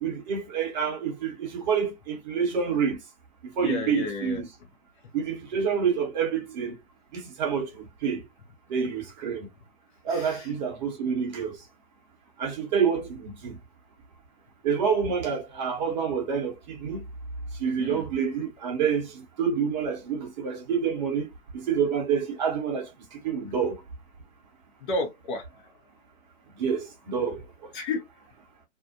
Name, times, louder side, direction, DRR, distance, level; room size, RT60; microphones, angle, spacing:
voice 1, 0.0-3.0 3.6-4.5 5.1-6.8 7.1-8.2 8.7-9.5 10.0-11.6 12.4-13.6 14.6-17.0 17.6-21.3 21.5-22.9 23.2-23.8 26.6-27.4, right 6 dB, 35° right, 0.8 m, -27 dB
voice 2, 3.6-4.4 10.1-10.5 17.8-18.0 24.9-25.7 27.7-28.1, left 3 dB, 35° left, 1.0 m, -32 dB
2.5 x 2.1 x 2.6 m
hypercardioid pair, 130°, 41 cm